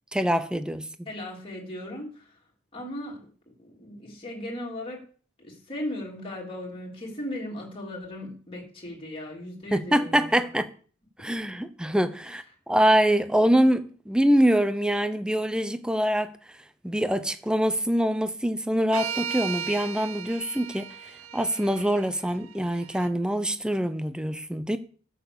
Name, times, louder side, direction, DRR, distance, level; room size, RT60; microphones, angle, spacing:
voice 1, 0.1-0.8 9.7-10.7 11.2-16.3 16.8-20.9 21.3-24.8, equal, 5° right, 0.7 m, -24 dB
voice 2, 1.0-2.4 2.7-5.1 5.4-10.5, left 1 dB, 25° left, 3.1 m, -37 dB
sound 1, 18.9-23.1, right 7 dB, 80° right, 0.8 m, -36 dB
12.5 x 6.3 x 6.9 m
head